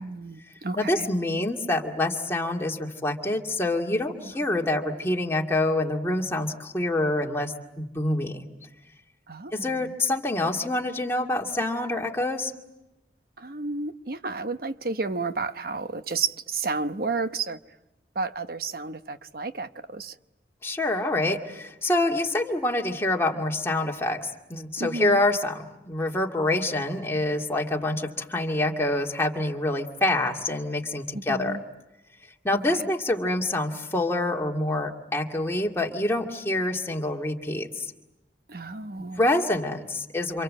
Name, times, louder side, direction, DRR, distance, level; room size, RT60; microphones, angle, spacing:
voice 1, 0.0-1.1 4.2-4.6 9.3-9.9 13.4-17.6 18.1-20.2 24.8-25.2 31.1-31.6 32.7-32.8 38.5-39.2, right 4 dB, 55° right, 1.0 m, -32 dB
voice 2, 0.8-8.5 9.5-12.5 20.6-31.6 32.4-37.9 39.0-40.4, left 2 dB, 15° left, 2.3 m, -26 dB
28.5 x 27.5 x 7.7 m
head